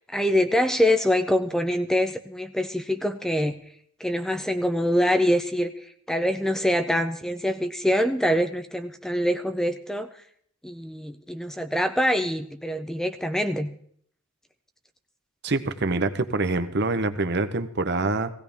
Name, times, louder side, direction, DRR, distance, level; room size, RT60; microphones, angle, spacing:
voice 1, 0.1-3.6 4.0-5.7 6.1-10.1 10.6-13.7, equal, ahead, 7 dB, 0.5 m, -24 dB
voice 2, 15.4-18.3, right 3 dB, 50° right, 10 dB, 0.9 m, -25 dB
17.5 x 16.5 x 3.5 m, 0.63 s
head